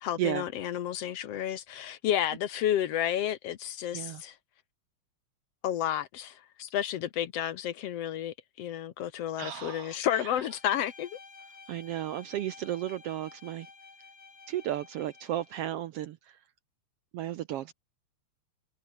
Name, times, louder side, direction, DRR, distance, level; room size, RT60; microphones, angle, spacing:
voice 1, 0.0-4.3 5.6-11.2, left 11 dB, 65° left, 1.9 m, -31 dB
voice 2, 9.4-10.4 11.7-13.7 14.5-16.4 17.1-17.7, right 12 dB, 70° right, 1.5 m, -34 dB
Bowed string instrument, 10.4-15.8, left 4 dB, 40° left, 4.3 m, -52 dB
omnidirectional pair, 3.3 m